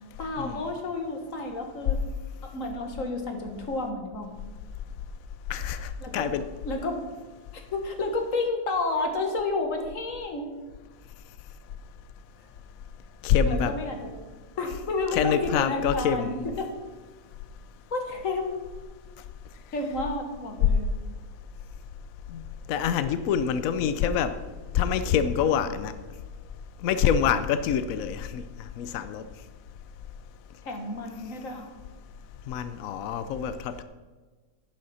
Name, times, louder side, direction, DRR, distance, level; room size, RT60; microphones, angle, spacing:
voice 1, 0.2-2.0 2.4-4.4 6.0-6.3 6.7-7.1 7.5-10.5 13.5-14.1 14.6-16.7 17.9-18.6 19.7-20.9 30.7-31.7, left 2 dB, 45° left, 4 dB, 1.7 m, -31 dB
voice 2, 5.5-6.4 13.2-13.8 15.1-16.4 22.3-22.4 22.7-24.4 24.7-25.9 26.8-28.4 28.8-29.2 32.5-33.8, left 8 dB, 85° left, 12 dB, 0.7 m, -26 dB
11.5 x 9.7 x 4.2 m, 1.3 s
omnidirectional pair, 2.2 m